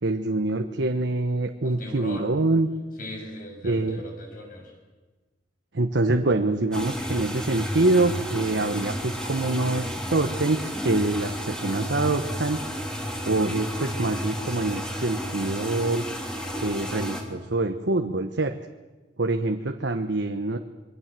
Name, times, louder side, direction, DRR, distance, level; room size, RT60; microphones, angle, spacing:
voice 1, 0.0-2.7 3.6-4.0 5.7-12.6 13.2-16.0 16.6-18.6 19.2-20.6, right 2 dB, 85° right, 6 dB, 1.2 m, -25 dB
voice 2, 1.6-2.3 3.0-4.7, left 1 dB, 50° left, 2 dB, 7.2 m, -39 dB
sound 1, 6.7-17.2, equal, 5° left, 3.3 m, -32 dB
27.0 x 22.5 x 7.7 m, 1.2 s
head